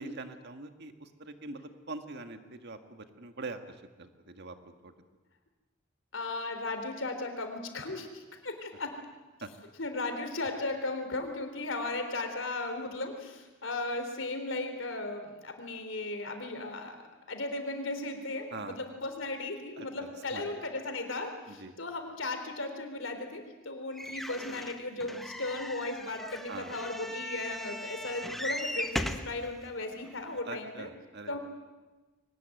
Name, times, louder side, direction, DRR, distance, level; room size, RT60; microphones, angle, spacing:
voice 1, 0.0-4.9 9.4-9.5 12.8-12.9 18.5-18.8 19.8-20.5 21.5-21.7 26.5-26.8 30.4-31.4, right 3 dB, 55° right, 7 dB, 1.9 m, -44 dB
voice 2, 6.1-9.0 9.8-17.0 17.3-30.9 31.3-31.4, left 2 dB, 70° left, 6 dB, 3.7 m, -36 dB
sound 1, 24.0-29.3 30.0-30.1 30.4-30.5, equal, ahead, 1.4 m, -38 dB
23.0 x 19.5 x 9.2 m, 1.2 s
head